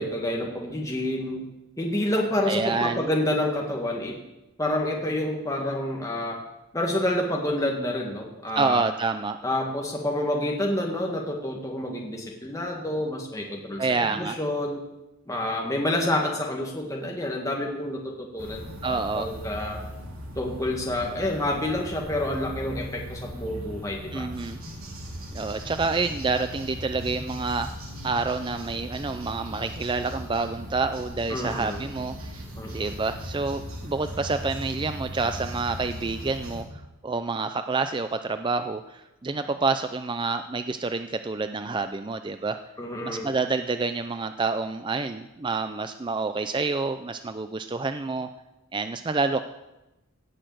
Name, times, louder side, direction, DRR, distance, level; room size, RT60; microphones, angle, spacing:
voice 1, 0.0-1.5 1.8-4.2 4.6-6.4 6.7-8.8 9.4-14.8 15.3-19.8 20.3-24.3 31.3-31.8 32.5-32.9 42.8-43.3, left 1 dB, 15° left, 0 dB, 1.8 m, -28 dB
voice 2, 2.4-3.1 8.5-9.4 13.8-14.4 18.8-19.3 24.1-24.6 25.3-27.7 28.0-32.4 32.7-36.7 37.0-42.6 43.0-48.3 48.7-49.4, right 4 dB, 20° right, 9 dB, 0.4 m, -28 dB
sound 1, 18.4-36.6, equal, 75° right, 3.3 m, -38 dB
17.5 x 6.7 x 7.8 m, 0.97 s
head